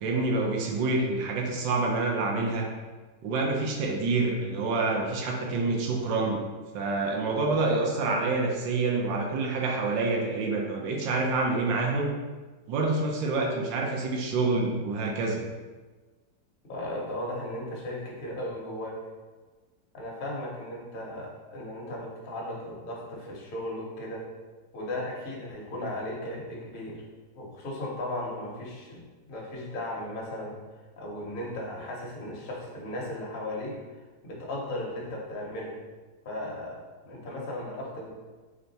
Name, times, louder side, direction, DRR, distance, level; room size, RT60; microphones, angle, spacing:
voice 1, 0.0-2.7 3.2-6.4 6.7-12.1 12.7-15.4, right 3 dB, 90° right, 0 dB, 1.4 m, -27 dB
voice 2, 16.7-19.0 19.9-24.3 24.7-27.0 27.3-30.6 31.0-33.8 34.2-35.8 36.2-38.1, left 1 dB, 45° left, -2 dB, 0.7 m, -36 dB
3.7 x 3.3 x 4.0 m, 1.3 s
omnidirectional pair, 1.9 m